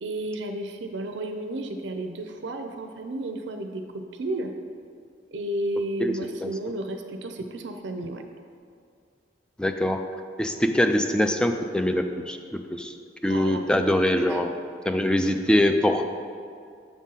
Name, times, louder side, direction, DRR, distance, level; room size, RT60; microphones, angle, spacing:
voice 1, 0.0-4.5 5.3-8.2 13.3-13.7 14.3-14.4 14.8-15.0, right 1 dB, 80° right, 5 dB, 0.5 m, -32 dB
voice 2, 6.0-6.5 9.6-10.0 10.4-12.9 13.2-14.5 14.9-16.0, left 1 dB, 5° left, 6 dB, 0.3 m, -23 dB
7.1 x 3.8 x 5.5 m, 2.3 s
head